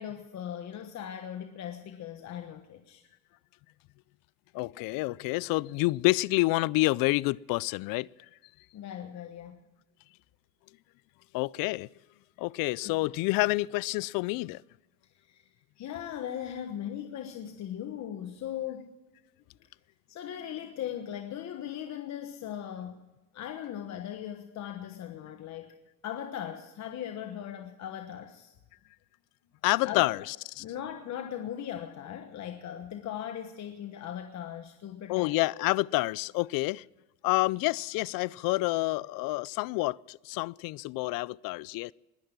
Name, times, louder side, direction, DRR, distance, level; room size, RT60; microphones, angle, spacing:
voice 1, 0.0-3.0 8.7-9.6 12.8-13.0 15.1-18.9 20.1-23.0 23.3-25.7 26.0-28.5 29.8-30.1 30.6-35.4, left 10 dB, 50° left, 1.3 m, -39 dB
voice 2, 4.5-8.1 11.3-11.9 12.4-14.6 29.6-30.6 35.1-36.8 37.2-41.9, left 22 dB, 75° left, 0.5 m, -28 dB
21.0 x 10.5 x 6.0 m
cardioid pair, 130°, 35 cm